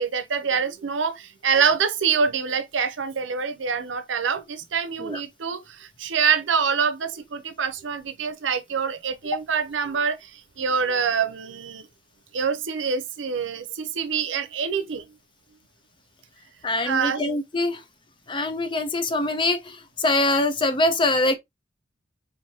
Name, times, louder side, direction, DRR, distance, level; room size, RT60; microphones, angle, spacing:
voice 1, 0.0-11.9 12.3-15.1 16.8-17.2, right 6 dB, 85° right, 0.6 m, -25 dB
voice 2, 16.6-17.8 18.3-21.4, left 2 dB, 25° left, 0.5 m, -23 dB
4.5 x 2.6 x 2.7 m
head